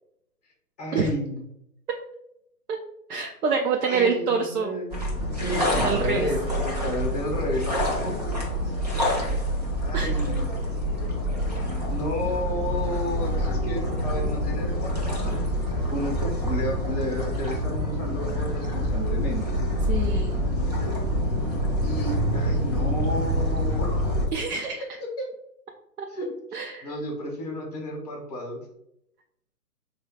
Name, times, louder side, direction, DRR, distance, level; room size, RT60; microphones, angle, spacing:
voice 1, 0.8-1.4 3.9-5.0 5.4-8.2 9.8-10.5 11.9-15.4 15.9-19.5 21.8-24.1 25.0-25.3 26.1-26.3 26.8-28.6, equal, 25° left, 0 dB, 0.7 m, -31 dB
voice 2, 3.1-4.7 5.8-6.3 9.9-10.2 19.9-20.4 24.3-24.8 26.0-26.1 26.5-26.9, right 5 dB, 70° right, 2 dB, 0.6 m, -26 dB
sound 1, 4.9-24.3, equal, 25° right, 0.5 m, -26 dB
3.1 x 2.3 x 3.5 m, 0.79 s
hypercardioid pair, 145°, 47 cm